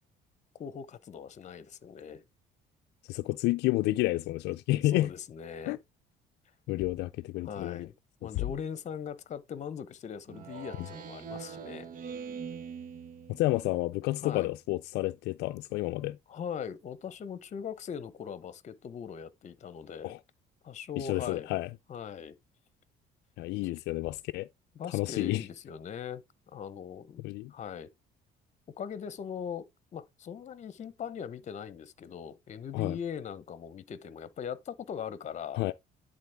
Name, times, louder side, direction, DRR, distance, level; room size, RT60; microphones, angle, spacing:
voice 1, 0.6-2.2 4.8-5.8 7.4-7.9 8.2-11.9 14.2-14.5 16.3-20.2 20.6-21.5 21.9-22.4 24.7-26.2 26.5-27.2 27.5-27.9 28.8-35.6, left 7 dB, 45° left, 0.9 m, -40 dB
voice 2, 3.1-5.1 5.7-5.8 6.7-7.9 8.4-8.6 13.3-16.2 20.0-20.2 21.0-21.7 23.4-24.5 24.9-25.5 27.2-27.5 32.7-33.0 35.6-35.7, left 18 dB, 80° left, 0.4 m, -30 dB
Speech synthesizer, 10.3-13.8, right 6 dB, 55° right, 1.2 m, -43 dB
10.5 x 4.0 x 3.4 m
cardioid pair, 110°, 17 cm